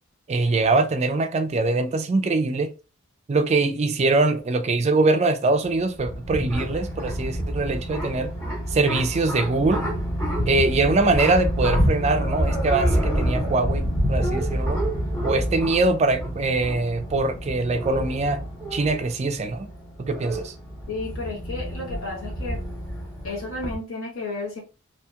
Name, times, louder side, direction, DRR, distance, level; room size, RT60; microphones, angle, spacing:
voice 1, 0.3-2.7 3.3-8.3 8.7-9.8 10.5-14.8 15.2-18.4 18.7-19.7 20.0-20.5, right 3 dB, 30° right, 0.3 m, -23 dB
sound 1, 5.6-23.7, equal, 15° left, 1.3 m, -28 dB
voice 2, 20.9-22.6 23.2-24.6, left 2 dB, 70° left, 1.0 m, -32 dB
2.8 x 2.7 x 2.2 m
head